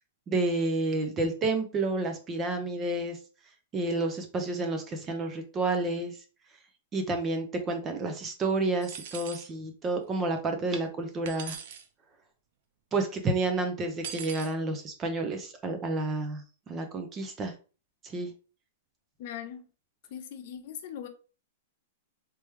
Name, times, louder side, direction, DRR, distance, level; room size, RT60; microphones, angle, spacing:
voice 1, 0.3-3.2 3.7-6.1 6.9-11.6 12.9-16.4 16.7-17.5 18.0-18.3, right 2 dB, 25° right, 0.7 m, -30 dB
sound 1, 8.8-9.5 11.2-11.9 14.0-14.5, right 8 dB, 60° right, 0.6 m, -40 dB
voice 2, 19.2-19.6 20.1-21.1, left 9 dB, 60° left, 0.7 m, -40 dB
3.4 x 3.0 x 3.1 m
hypercardioid pair, 135°, 0 cm